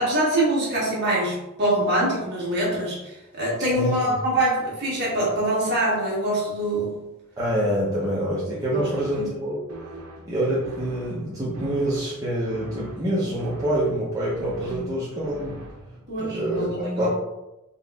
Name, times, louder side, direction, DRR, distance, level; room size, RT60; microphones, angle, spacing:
voice 1, 0.0-6.9 8.7-8.9 9.1-9.3 14.7-14.9 16.1-17.1, right 1 dB, 50° right, -5 dB, 1.4 m, -24 dB
voice 2, 3.7-4.2 7.4-9.6 10.3-15.6 16.2-17.1, right 1 dB, 15° right, -9 dB, 0.8 m, -26 dB
sound 1, 8.8-16.2, right 2 dB, 75° right, 0.7 m, -42 dB
4.0 x 3.0 x 2.4 m, 0.96 s
head